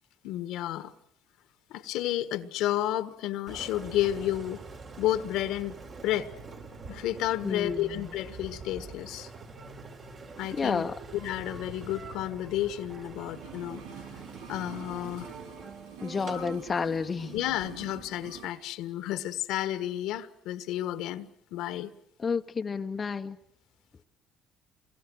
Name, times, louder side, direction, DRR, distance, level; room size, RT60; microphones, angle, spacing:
voice 1, 0.2-0.9 1.7-4.6 5.0-6.3 6.9-9.3 10.4-10.9 11.1-13.8 14.5-15.3 16.3-16.4 17.3-21.9, left 13 dB, 75° left, 1.4 m, -31 dB
Engine, 3.5-18.5, right 4 dB, 45° right, 4.2 m, -45 dB
voice 2, 7.4-8.0 10.5-11.0 16.0-17.3 22.2-23.4, left 5 dB, 35° left, 1.0 m, -30 dB
sound 1, 13.1-18.6 18.8-18.9, right 8 dB, 85° right, 1.6 m, -47 dB
28.0 x 22.5 x 6.4 m
supercardioid pair, 80°, 0 cm